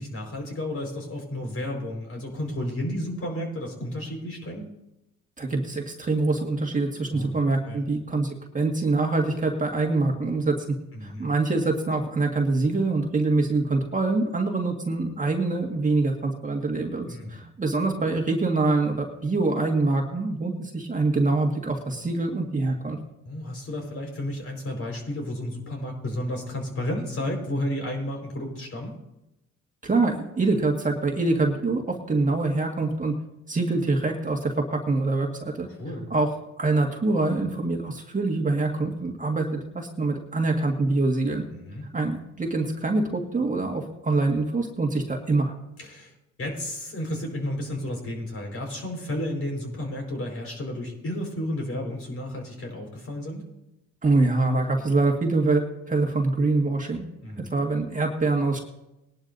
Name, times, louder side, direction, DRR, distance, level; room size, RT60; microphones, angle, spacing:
voice 1, 0.0-4.7 7.1-7.3 7.6-7.8 10.9-11.3 17.0-17.4 23.2-28.9 35.8-36.1 41.5-41.8 45.8-46.1 46.4-53.4 57.2-57.4, left 1 dB, 45° left, 1 dB, 4.9 m, -32 dB
voice 2, 5.4-23.0 29.8-33.2 33.5-35.7 36.1-36.3 36.6-41.4 41.9-45.5 54.0-55.6 55.9-57.0 57.4-58.6, right 3 dB, 25° right, 1 dB, 1.9 m, -25 dB
20.0 x 11.0 x 2.7 m, 0.90 s
cardioid pair, 85°, 31 cm